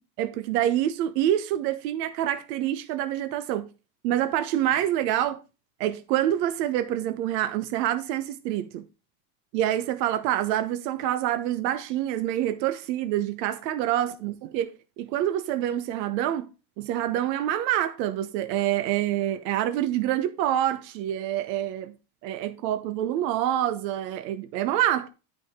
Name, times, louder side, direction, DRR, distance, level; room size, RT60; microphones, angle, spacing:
voice 1, 0.2-3.7 4.0-5.4 5.8-8.8 9.5-16.5 16.8-21.9 22.2-25.1, right 12 dB, 85° right, 1.1 m, -26 dB
12.5 x 5.2 x 3.7 m
cardioid pair, 175°, 49 cm